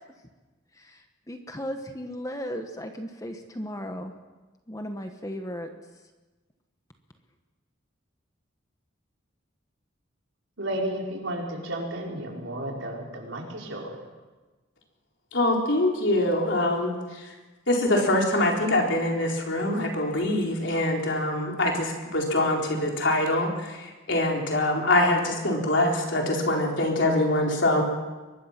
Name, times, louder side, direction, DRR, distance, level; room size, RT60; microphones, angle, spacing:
voice 1, 1.3-4.1 4.7-5.7, equal, 15° left, 5 dB, 1.3 m, -35 dB
voice 2, 10.6-13.9, right 1 dB, 75° right, -1 dB, 5.1 m, -32 dB
voice 3, 15.3-16.9 17.7-23.8 24.1-27.8, left 1 dB, 65° left, 0 dB, 4.3 m, -24 dB
23.5 x 21.0 x 6.0 m, 1.2 s
head